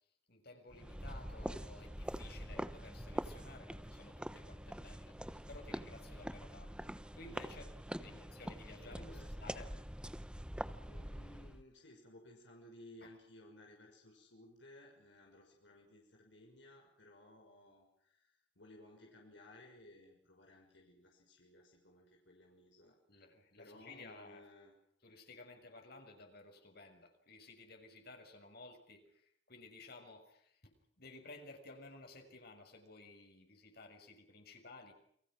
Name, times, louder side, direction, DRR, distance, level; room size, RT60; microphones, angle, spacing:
voice 1, 0.3-10.0 13.0-13.1 23.1-24.4 25.0-34.9, left 2 dB, 60° left, 4 dB, 6.5 m, -56 dB
sound 1, 0.7-11.6, equal, 5° right, 1.1 m, -45 dB
voice 2, 8.8-9.4 10.9-23.2 23.6-24.7, left 1 dB, 80° left, 0 dB, 6.4 m, -59 dB
30.0 x 23.5 x 6.3 m, 0.70 s
head